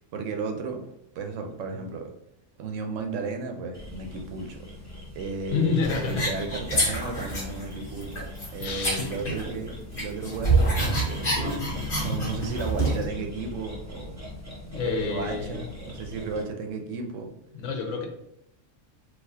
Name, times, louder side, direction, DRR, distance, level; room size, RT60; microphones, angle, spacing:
voice 1, 0.1-2.2 2.6-4.7 5.1-11.6 12.0-14.2 14.8-17.3, right 4 dB, 80° right, 3 dB, 0.9 m, -34 dB
sound 1, 3.7-16.4, left 2 dB, 15° right, 0.9 m, -40 dB
voice 2, 5.5-6.3 8.6-9.1 14.7-15.6 17.5-18.1, left 5 dB, 75° left, 3 dB, 1.0 m, -28 dB
sound 2, 5.8-7.6 8.0-9.7 9.9-13.1, right 2 dB, 45° left, 1.3 m, -27 dB
4.1 x 2.3 x 2.7 m, 0.80 s
omnidirectional pair, 1.3 m